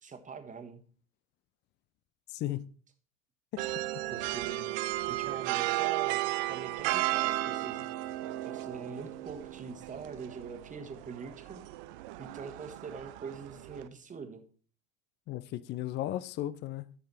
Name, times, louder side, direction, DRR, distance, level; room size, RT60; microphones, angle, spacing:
voice 1, 0.0-0.8 4.1-4.8 5.1-7.8 8.4-11.6 12.2-14.4, right 5 dB, 20° right, 1.5 m, -43 dB
voice 2, 2.3-2.6 3.5-3.6 15.3-16.9, left 14 dB, 25° left, 0.5 m, -35 dB
sound 1, 3.6-13.9, right 17 dB, 45° right, 0.6 m, -34 dB
11.0 x 6.7 x 4.2 m
figure-of-eight pair, 75°, 40 cm